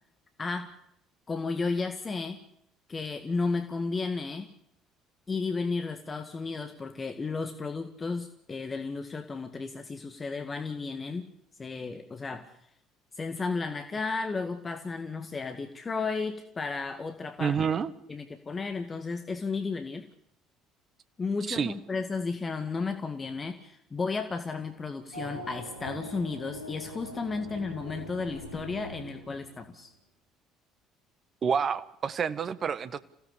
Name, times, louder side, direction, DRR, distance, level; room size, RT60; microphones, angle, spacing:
voice 1, 0.4-0.7 1.3-2.4 2.9-4.5 5.3-11.3 11.6-12.5 13.2-17.6 18.1-20.1 21.2-29.9, left 4 dB, 25° left, 1.9 m, -33 dB
voice 2, 17.4-17.9 21.5-21.7 31.4-33.0, right 6 dB, 40° right, 1.4 m, -28 dB
Race car auto racing / Accelerating revving vroom, 25.1-29.8, equal, 85° right, 5.9 m, -42 dB
27.5 x 17.0 x 8.4 m
figure-of-eight pair, 55°, 0 cm